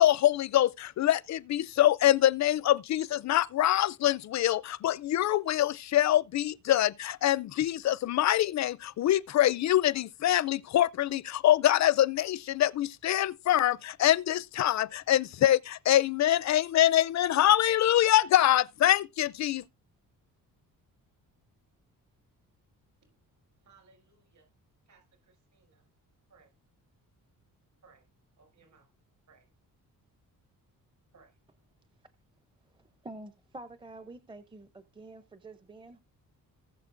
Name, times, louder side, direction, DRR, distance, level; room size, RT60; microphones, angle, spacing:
voice 1, 0.0-19.6, left 13 dB, 55° left, 0.4 m, -25 dB
voice 2, 23.0-24.5 24.9-25.9 26.3-26.5 27.8-28.9 29.3-29.5 31.1-31.4, right 4 dB, 55° right, 6.1 m, -63 dB
voice 3, 32.7-36.0, right 2 dB, 15° right, 0.6 m, -47 dB
19.0 x 6.6 x 2.5 m
cardioid pair, 150°, 34 cm